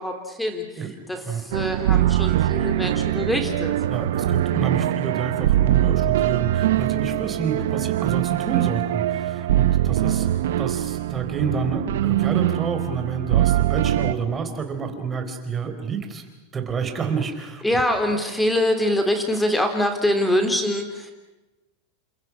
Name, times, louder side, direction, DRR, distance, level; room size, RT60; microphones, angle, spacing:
voice 1, 0.0-3.8 17.6-21.1, left 1 dB, 5° left, 6 dB, 3.8 m, -24 dB
sound 1, 1.5-14.1, right 13 dB, 85° right, 0.8 m, -22 dB
voice 2, 3.9-16.2 16.5-17.6, right 6 dB, 20° right, 6 dB, 4.3 m, -29 dB
30.0 x 27.0 x 6.2 m, 1.0 s
supercardioid pair, 150°, 0 cm